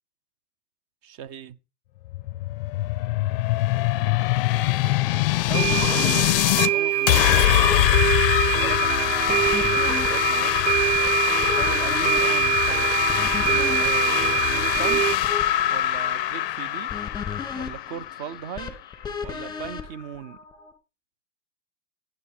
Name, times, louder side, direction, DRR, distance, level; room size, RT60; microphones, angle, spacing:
voice 1, 1.0-1.6 4.0-4.4 5.5-7.5 8.5-10.7 11.6-13.0 13.4-15.0 15.7-16.9 17.6-18.7 19.2-20.4, right 9 dB, 30° right, 0.8 m, -38 dB
sound 1, 2.1-6.7 7.1-18.6, left 14 dB, 35° left, 0.6 m, -23 dB
sound 2, 5.5-20.7, left 6 dB, 10° left, 2.6 m, -36 dB
sound 3, 5.5-15.2, right 12 dB, 85° right, 0.9 m, -25 dB
14.5 x 9.8 x 4.9 m
hypercardioid pair, 130°, 49 cm